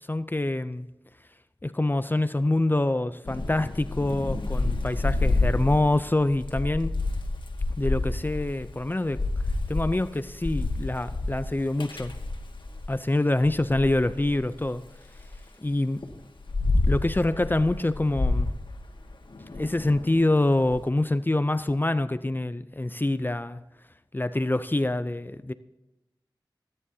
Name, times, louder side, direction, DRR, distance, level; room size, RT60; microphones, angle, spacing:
voice 1, 0.1-0.9 1.6-7.0 7.8-9.2 9.7-12.1 12.9-14.8 15.6-16.0 16.9-18.5 19.5-23.6 24.1-25.5, left 2 dB, 25° left, 12 dB, 0.5 m, -25 dB
Thunder / Rain, 3.2-13.0 13.4-15.4 16.0-20.8, left 2 dB, 75° left, 1.6 m, -29 dB
23.0 x 9.9 x 2.8 m, 1.0 s
wide cardioid pair, 50°, 8 cm